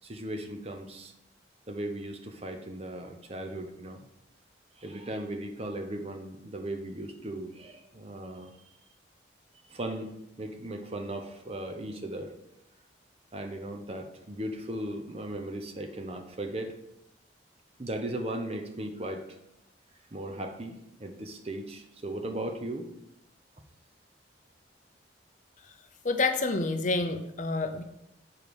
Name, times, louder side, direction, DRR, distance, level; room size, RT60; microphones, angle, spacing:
voice 1, 0.0-1.1 1.7-4.0 4.8-8.5 9.7-10.1 10.4-12.3 13.3-16.7 17.8-19.3 20.1-20.7 21.0-22.9, right 1 dB, 30° right, 5 dB, 0.8 m, -37 dB
voice 2, 26.0-27.8, left 3 dB, 40° left, 6 dB, 0.6 m, -28 dB
7.2 x 4.7 x 5.2 m, 0.83 s
head